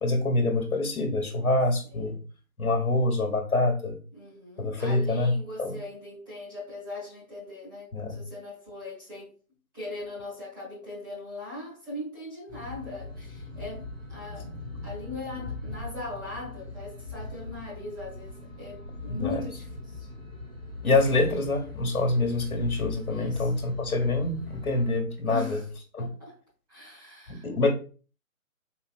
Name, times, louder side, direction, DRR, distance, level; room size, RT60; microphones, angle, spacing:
voice 1, 0.0-2.2 2.6-4.0 4.6-5.8 7.9-8.2 19.1-19.4 20.8-25.6 25.9-26.1 27.3-27.7, left 2 dB, 80° left, 1.3 m, -26 dB
voice 2, 4.1-9.3 9.7-14.5 14.8-20.1 23.1-23.5 25.2-25.6 26.0-26.4 26.7-27.5, left 2 dB, 15° right, 1.5 m, -40 dB
sound 1, 12.5-25.0, left 2 dB, 40° right, 1.7 m, -40 dB
4.1 x 3.2 x 2.4 m
figure-of-eight pair, 165°, 43 cm